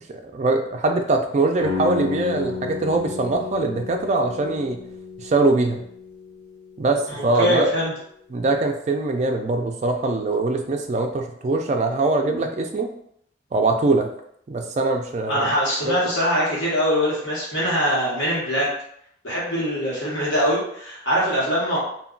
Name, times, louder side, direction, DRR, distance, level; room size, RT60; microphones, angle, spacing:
voice 1, 0.1-4.8 5.2-5.9 6.8-7.7 8.3-12.9 13.5-14.1 14.5-15.5 15.8-15.9, right 2 dB, 35° right, 4 dB, 0.3 m, -22 dB
sound 1, 1.6-7.4, left 4 dB, 15° left, 1.1 m, -33 dB
voice 2, 7.1-7.9 15.3-18.7 19.2-21.8, equal, 70° left, -7 dB, 1.1 m, -23 dB
2.2 x 2.2 x 3.7 m, 0.69 s
head